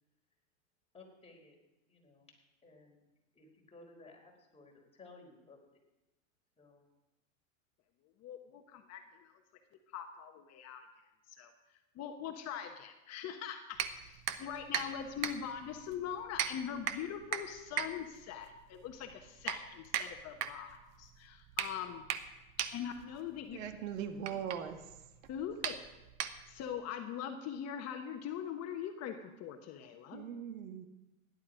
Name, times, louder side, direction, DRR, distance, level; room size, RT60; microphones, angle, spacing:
voice 1, 0.9-1.6 1.9-2.3 2.6-3.0 3.3-5.6 6.6-6.9, left 3 dB, 15° left, 0 dB, 4.2 m, -57 dB
voice 2, 8.2-9.3 9.9-10.9 11.4-11.5 11.9-22.0 22.7-23.6 25.3-25.8 26.2-30.2, left 8 dB, 40° left, 5 dB, 1.3 m, -42 dB
sound 1, 13.7-26.8, right 10 dB, 40° right, 1.2 m, -40 dB
voice 3, 23.5-24.9 30.1-30.9, right 8 dB, 70° right, 7 dB, 1.7 m, -40 dB
16.5 x 11.0 x 5.1 m, 1.0 s
hypercardioid pair, 115°, 41 cm